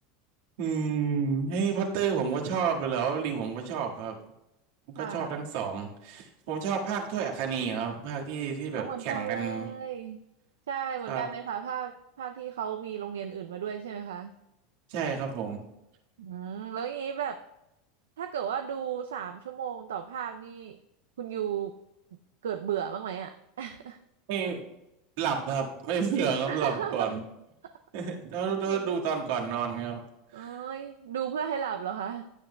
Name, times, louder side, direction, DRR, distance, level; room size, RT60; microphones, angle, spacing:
voice 1, 0.6-4.2 5.0-9.7 11.1-11.2 14.9-15.6 24.3-24.6 25.2-27.2 27.9-30.0 30.4-30.6, right 6 dB, 65° right, 0 dB, 1.7 m, -30 dB
voice 2, 5.0-5.5 8.8-10.2 10.7-14.3 16.2-17.4 18.2-20.8 21.2-21.7 22.1-24.0 26.5-27.1 27.6-27.7 28.7-29.0 30.3-32.2, right 8 dB, 80° right, 7 dB, 0.5 m, -35 dB
15.5 x 9.0 x 2.2 m, 0.90 s
hypercardioid pair, 90°, 0 cm